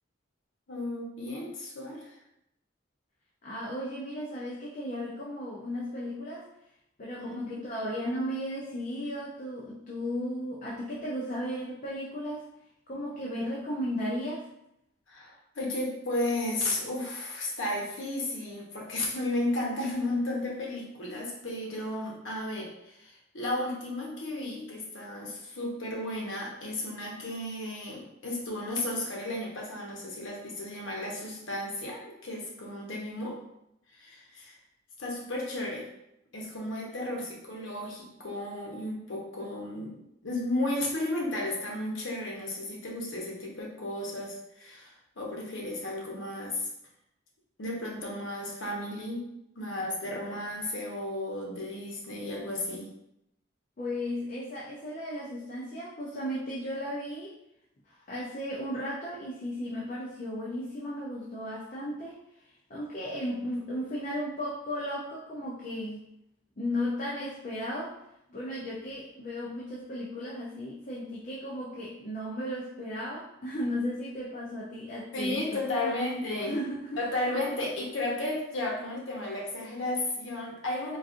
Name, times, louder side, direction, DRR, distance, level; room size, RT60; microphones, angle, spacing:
voice 1, 0.7-2.2 7.2-7.6 15.1-33.4 33.9-34.6 35.0-35.9 36.3-46.7 47.6-52.9 75.1-76.6 77.0-81.0, left 1 dB, 90° left, -2 dB, 0.9 m, -34 dB
voice 2, 3.4-6.5 7.0-12.5 12.9-14.5 53.8-57.3 57.9-62.2 62.7-66.0 66.6-68.0 68.3-75.9 76.4-77.0, equal, 45° left, -5 dB, 0.5 m, -35 dB
3.9 x 2.3 x 2.5 m, 0.82 s
head